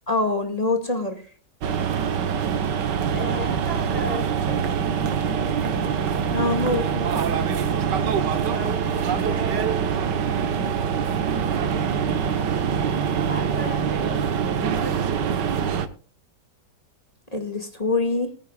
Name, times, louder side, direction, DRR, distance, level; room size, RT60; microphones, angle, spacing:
voice 1, 0.1-1.2 6.3-7.1 17.3-18.3, left 2 dB, 20° left, 5 dB, 2.0 m, -24 dB
sound 1, 1.6-15.9, right 7 dB, 90° right, 1.7 m, -24 dB
voice 2, 3.1-4.8 7.6-7.9 8.5-10.2 13.3-15.1, right 1 dB, 5° right, 0 dB, 6.4 m, -37 dB
20.5 x 10.0 x 2.4 m, 0.41 s
omnidirectional pair, 1.8 m